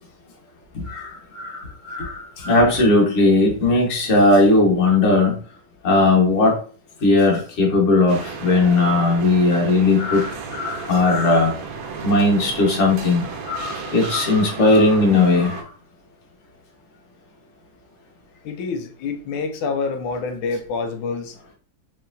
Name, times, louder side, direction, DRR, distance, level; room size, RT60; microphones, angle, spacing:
voice 1, 0.7-5.4 5.8-6.6 7.0-11.5 12.0-15.6, left 2 dB, 45° left, 0 dB, 1.2 m, -18 dB
sound 1, 8.1-15.6, right 5 dB, 85° right, 1.5 m, -34 dB
voice 2, 18.4-21.3, left 4 dB, 85° left, 7 dB, 1.4 m, -27 dB
4.6 x 3.2 x 2.5 m, 0.40 s
omnidirectional pair, 2.2 m